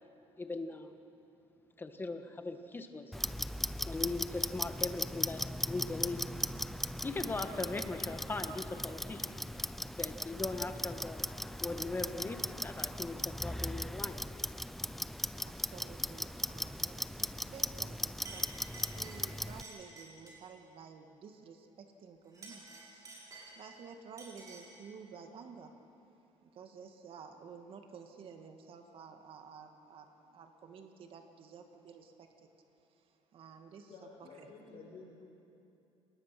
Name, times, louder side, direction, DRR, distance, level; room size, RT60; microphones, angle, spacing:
voice 1, 0.4-0.9 1.8-3.2 3.8-6.2 7.0-9.3 9.9-11.2 11.6-14.2, left 3 dB, 20° left, 7 dB, 1.5 m, -39 dB
Clock, 3.1-19.6, equal, ahead, 0.5 m, -38 dB
voice 2, 15.4-23.1 23.6-25.7 26.4-32.5 33.3-33.9 34.2-34.5, right 6 dB, 55° right, 5 dB, 2.0 m, -52 dB
Chink clink, 17.7-17.9 18.2-20.5 22.2-23.8 24.2-24.8, right 3 dB, 30° right, 7.0 m, -51 dB
voice 3, 33.9-35.2, left 4 dB, 60° left, -8 dB, 6.5 m, -52 dB
29.5 x 20.0 x 6.0 m, 2.7 s
cardioid pair, 115°, 11 cm